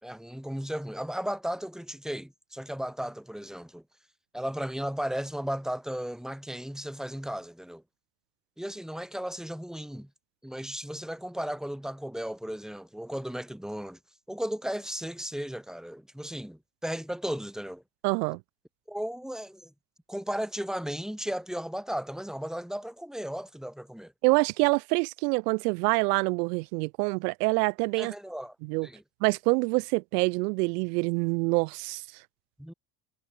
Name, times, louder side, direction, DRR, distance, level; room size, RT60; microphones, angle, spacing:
voice 1, 0.0-3.8 4.3-7.8 8.6-10.1 10.4-14.0 14.3-17.8 18.9-19.7 20.1-24.1 28.0-28.6 28.8-29.0 32.6-32.7, equal, ahead, 4.1 m, -35 dB
voice 2, 18.0-18.4 24.2-28.1 28.7-28.9 29.2-32.0, right 28 dB, 90° right, 2.9 m, -26 dB
supercardioid pair, 105°, 46 cm